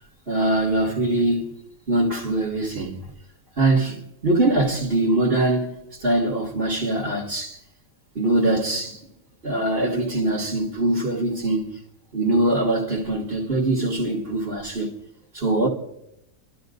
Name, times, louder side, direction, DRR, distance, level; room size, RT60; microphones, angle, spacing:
voice 1, 0.3-3.0 3.6-7.6 8.1-9.0 9.4-11.8 12.1-14.9 15.3-15.7, right 2 dB, 35° right, 2.5 m, -23 dB
28.0 x 13.0 x 2.6 m
omnidirectional pair, 1.8 m